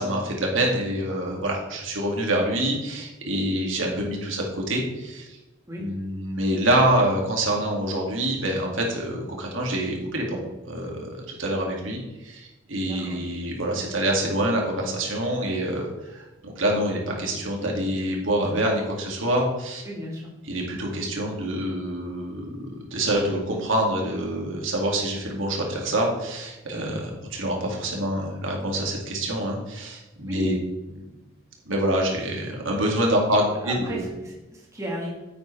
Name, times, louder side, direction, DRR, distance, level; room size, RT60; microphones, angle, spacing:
voice 1, 0.0-5.4 5.8-15.9 16.1-19.8 20.5-30.5 30.9-31.0 31.7-34.1, right 1 dB, 85° right, -1 dB, 2.3 m, -26 dB
voice 2, 12.8-13.2 19.8-20.3 26.7-27.0 30.3-30.5 33.3-35.1, equal, 15° right, -2 dB, 1.7 m, -35 dB
9.8 x 8.3 x 3.4 m, 1.1 s
head